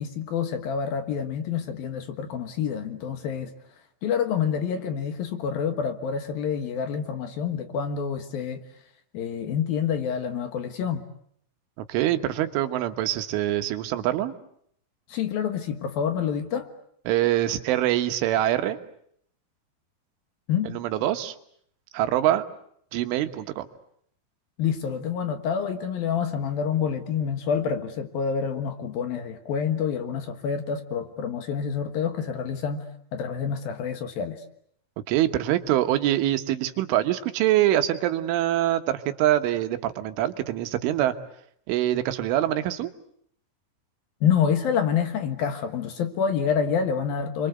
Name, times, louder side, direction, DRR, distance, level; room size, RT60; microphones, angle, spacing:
voice 1, 0.0-3.5 4.0-8.6 9.1-11.0 15.1-16.7 20.5-20.7 24.6-32.9 33.1-34.4 44.2-47.5, left 7 dB, 65° left, 8 dB, 2.9 m, -27 dB
voice 2, 11.9-14.3 17.1-18.8 20.7-21.4 21.9-22.4 22.9-23.7 35.1-41.1 41.7-42.9, right 13 dB, 90° right, 9 dB, 3.8 m, -24 dB
30.0 x 24.0 x 8.0 m, 0.68 s
omnidirectional pair, 5.4 m